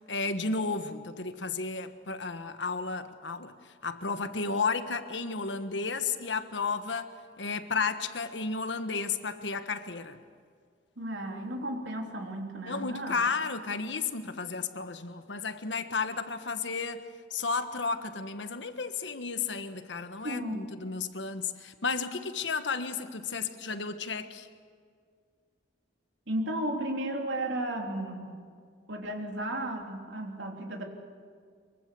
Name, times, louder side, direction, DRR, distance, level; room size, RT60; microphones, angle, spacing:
voice 1, 0.1-10.2 12.7-17.0 17.3-24.5, left 4 dB, 80° left, 1.4 m, -33 dB
voice 2, 11.0-13.2 20.2-20.7 26.3-28.4 28.9-30.8, right 1 dB, 85° right, 3.3 m, -34 dB
24.0 x 23.5 x 6.9 m
head